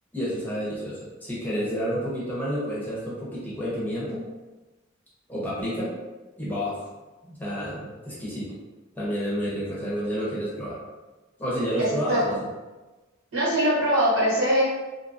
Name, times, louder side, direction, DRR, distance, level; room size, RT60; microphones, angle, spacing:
voice 1, 0.1-4.2 5.3-5.9 6.4-6.8 7.2-8.5 8.9-10.8 11.4-12.3, equal, 10° left, -8 dB, 0.8 m, -30 dB
voice 2, 11.8-12.4 13.3-14.6, equal, 80° right, -7 dB, 1.2 m, -22 dB
2.7 x 2.3 x 2.6 m, 1.1 s
head